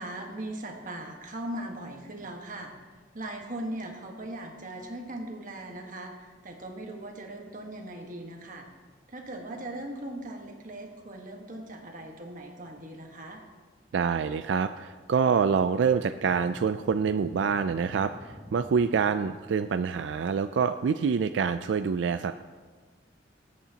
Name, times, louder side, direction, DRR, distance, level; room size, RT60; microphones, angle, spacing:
voice 1, 0.0-8.7 9.1-13.4, right 1 dB, 45° right, 2 dB, 1.4 m, -39 dB
voice 2, 13.9-22.4, right 6 dB, 75° right, 10 dB, 0.3 m, -26 dB
sound 1, 15.9-19.1, left 1 dB, 5° left, 4.0 m, -47 dB
20.5 x 8.5 x 2.9 m, 1.4 s
head